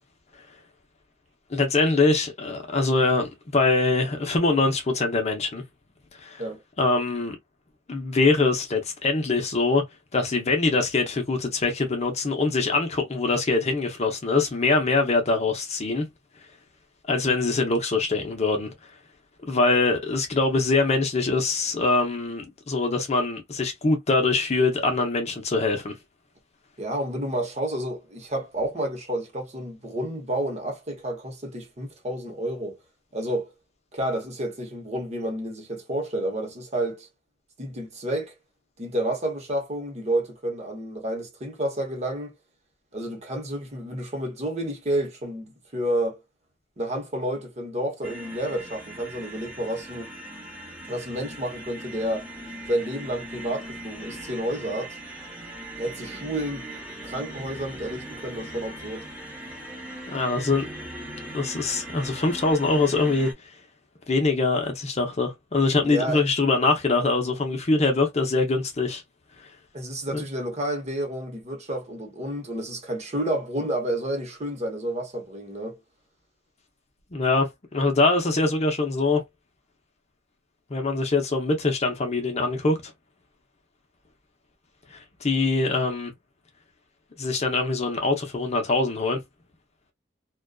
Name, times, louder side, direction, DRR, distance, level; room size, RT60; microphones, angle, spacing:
voice 1, 1.5-5.6 6.2-6.4 6.8-7.4 7.9-9.8 10.1-16.1 17.1-18.7 19.4-25.9 60.1-60.6 61.3-63.3 64.1-69.0 70.1-70.2 77.1-79.2 80.7-82.9 84.9-86.1 87.2-89.2, left 3 dB, 35° left, 0.6 m, -23 dB
voice 2, 26.8-32.8 33.1-33.5 33.9-37.1 37.6-38.3 38.8-42.3 42.9-46.2 46.8-50.1 50.9-52.3 52.7-55.0 55.8-56.7 57.0-59.1 65.8-66.2 69.7-75.8, right 1 dB, 35° right, 0.9 m, -30 dB
sound 1, 48.0-63.3, right 1 dB, 5° right, 1.0 m, -40 dB
2.4 x 2.2 x 2.2 m
head